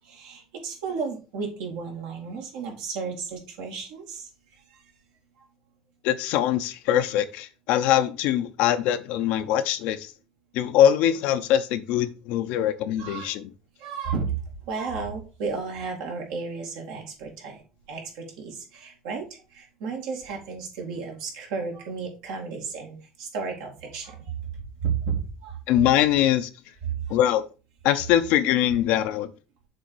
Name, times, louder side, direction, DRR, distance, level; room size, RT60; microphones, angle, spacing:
voice 1, 0.1-4.3 13.0-13.3 13.8-14.3 14.7-17.6 17.9-19.2 19.5-24.2 24.8-25.1 25.4-25.6 26.8-27.0, right 5 dB, 85° right, 2.4 m, -33 dB
voice 2, 6.0-10.1 10.5-13.5 25.7-26.5 27.1-27.5 27.8-29.3, left 11 dB, 75° left, 0.7 m, -22 dB
6.8 x 3.5 x 4.7 m
supercardioid pair, 95°, 2 cm